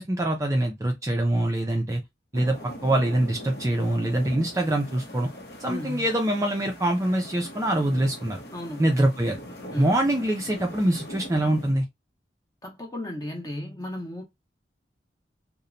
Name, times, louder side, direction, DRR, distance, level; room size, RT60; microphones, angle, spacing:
voice 1, 0.0-2.0 2.3-2.6 2.8-5.3 5.6-8.4 8.8-9.4 9.8-11.9, right 1 dB, 15° right, 0.4 m, -24 dB
sound 1, 2.3-11.7, equal, 60° left, 0.8 m, -41 dB
voice 2, 5.6-6.1 8.5-8.9 9.7-9.9 12.6-14.2, left 1 dB, 20° left, 0.7 m, -35 dB
2.9 x 2.1 x 2.5 m
head